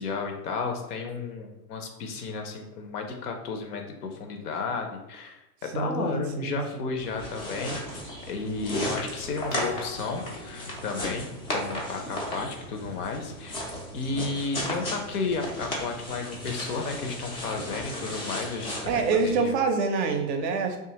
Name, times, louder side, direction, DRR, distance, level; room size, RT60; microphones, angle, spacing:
voice 1, 0.0-7.8 8.3-18.9 19.2-19.6, left 4 dB, 70° left, 4 dB, 0.7 m, -33 dB
voice 2, 5.7-6.9 18.8-20.8, right 4 dB, 45° right, 5 dB, 0.5 m, -26 dB
sound 1, 7.0-19.4, left 1 dB, 15° left, 0.3 m, -35 dB
Keyboard (musical), 9.5-12.1, left 5 dB, 90° left, 1.3 m, -44 dB
2.6 x 2.4 x 2.8 m, 0.98 s
hypercardioid pair, 95°, 48 cm